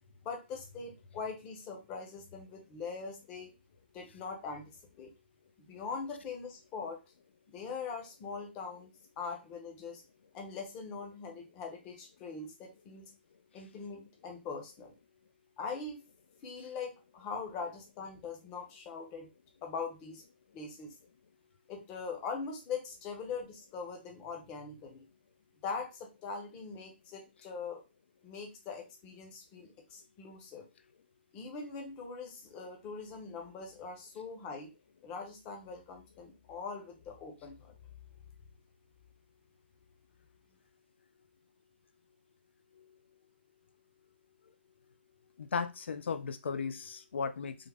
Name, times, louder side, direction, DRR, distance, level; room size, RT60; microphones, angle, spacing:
voice 1, 0.2-3.5 3.9-5.1 5.6-7.0 7.5-10.0 10.3-13.1 13.5-14.9 15.6-16.0 16.4-19.3 19.6-20.2 20.5-20.9 21.7-25.1 25.6-27.8 28.2-30.6 31.3-34.7 35.0-37.7, left 5 dB, 15° left, 3 dB, 0.6 m, -42 dB
voice 2, 45.4-47.5, left 5 dB, 80° left, 11 dB, 0.3 m, -35 dB
3.5 x 2.0 x 3.3 m, 0.27 s
hypercardioid pair, 165°, 6 cm